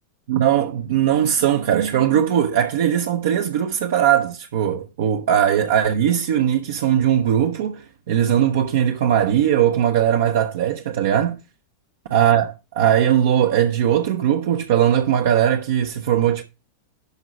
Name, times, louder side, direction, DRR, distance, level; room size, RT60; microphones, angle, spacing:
voice 1, 0.3-11.4 12.1-16.4, right 10 dB, 55° right, 0.8 m, -19 dB
12.5 x 4.7 x 4.5 m
figure-of-eight pair, 90°, 0 cm